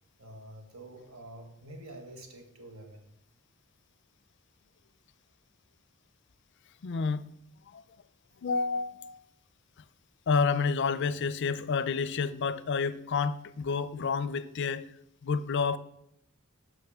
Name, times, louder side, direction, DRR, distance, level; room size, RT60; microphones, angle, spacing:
voice 1, 0.2-3.1, right 1 dB, 75° right, 1.4 m, -47 dB
voice 2, 6.8-7.2 7.7-7.8 8.4-9.2 10.3-14.9 15.2-15.8, left 5 dB, 55° left, 0.4 m, -29 dB
10.5 x 6.3 x 3.5 m
head